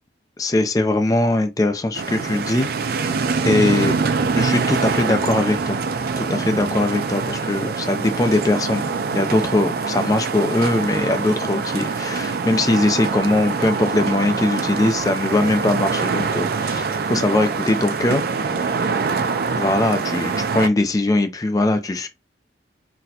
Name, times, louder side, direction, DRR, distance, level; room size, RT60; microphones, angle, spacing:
voice 1, 0.4-2.7 3.4-4.0 4.3-5.8 6.2-8.8 9.1-18.2 18.6-18.8 19.6-22.1, left 2 dB, 20° left, 0.3 m, -21 dB
sound 1, 1.9-20.7, right 4 dB, 55° right, 0.4 m, -24 dB
4.0 x 2.1 x 2.7 m
head